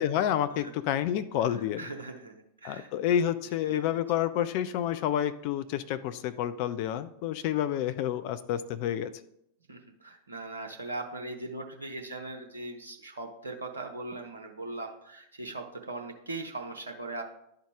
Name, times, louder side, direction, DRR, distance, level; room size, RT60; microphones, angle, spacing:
voice 1, 0.0-1.9 2.6-9.1, left 10 dB, 45° left, 12 dB, 0.4 m, -29 dB
voice 2, 1.8-3.2 3.7-4.0 9.7-17.2, right 2 dB, 75° right, 2 dB, 0.7 m, -40 dB
11.5 x 3.8 x 3.6 m, 0.77 s
figure-of-eight pair, 90°, 0 cm